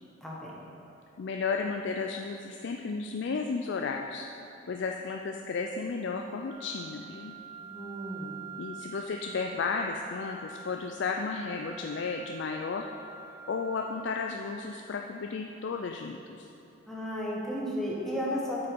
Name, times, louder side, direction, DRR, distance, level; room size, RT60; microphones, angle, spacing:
voice 1, 0.2-0.5 7.6-8.4 16.9-18.7, equal, ahead, -5 dB, 1.2 m, -34 dB
voice 2, 1.2-4.3 4.7-7.3 8.6-12.9 13.5-16.5, left 4 dB, 60° left, 3 dB, 0.4 m, -33 dB
Wind instrument woodwind instrument, 6.5-14.3, right 5 dB, 15° right, 0.3 m, -46 dB
8.0 x 5.6 x 5.2 m, 2.9 s
head